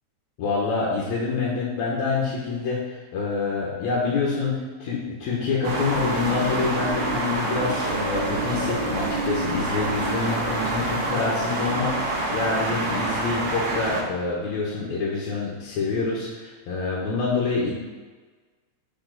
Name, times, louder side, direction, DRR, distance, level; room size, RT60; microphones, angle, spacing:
voice 1, 0.4-17.7, left 4 dB, 75° left, -5 dB, 2.3 m, -26 dB
sound 1, 5.6-14.0, right 2 dB, 65° right, 1.6 m, -27 dB
6.9 x 5.0 x 3.9 m, 1.4 s
omnidirectional pair, 3.3 m